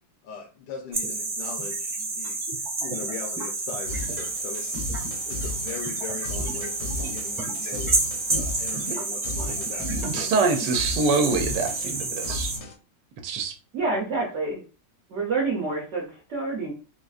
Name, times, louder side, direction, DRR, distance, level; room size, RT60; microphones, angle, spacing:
voice 1, 0.2-4.8 5.3-8.0 8.3-10.7 11.2-11.3, left 6 dB, 80° left, 1 dB, 1.3 m, -40 dB
sound 1, 0.9-12.6, right 3 dB, 30° right, 0.9 m, -30 dB
sound 2, 3.9-12.7, left 2 dB, 60° left, 0.9 m, -36 dB
voice 2, 9.9-12.5 13.2-13.5, right 4 dB, 75° right, 4 dB, 1.1 m, -25 dB
voice 3, 13.7-14.6 15.1-16.7, right 3 dB, 55° right, -2 dB, 0.9 m, -27 dB
3.8 x 2.5 x 2.4 m, 0.35 s
omnidirectional pair, 1.9 m